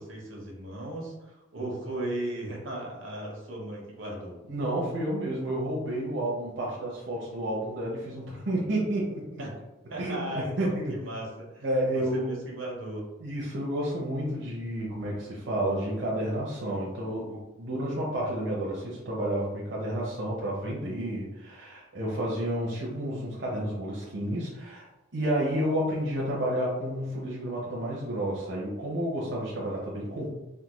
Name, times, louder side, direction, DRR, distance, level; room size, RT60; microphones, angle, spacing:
voice 1, 0.0-4.4 9.4-9.5 9.9-11.7 11.9-13.1, right 1 dB, 85° right, -1 dB, 0.9 m, -36 dB
voice 2, 4.5-9.4 10.0-11.0 11.6-12.3 13.2-24.9 25.1-30.3, right 1 dB, 60° right, -5 dB, 0.6 m, -30 dB
3.5 x 2.2 x 2.9 m, 1.0 s
head